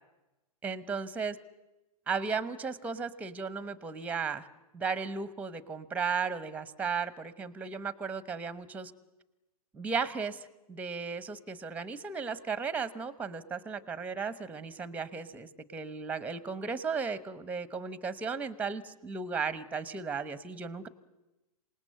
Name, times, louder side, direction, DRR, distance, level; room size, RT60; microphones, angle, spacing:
voice 1, 0.6-1.4 2.1-4.5 4.7-8.9 9.7-20.9, right 5 dB, 5° right, 15 dB, 1.0 m, -35 dB
27.0 x 19.0 x 7.9 m, 1.0 s
hypercardioid pair, 125°, 20 cm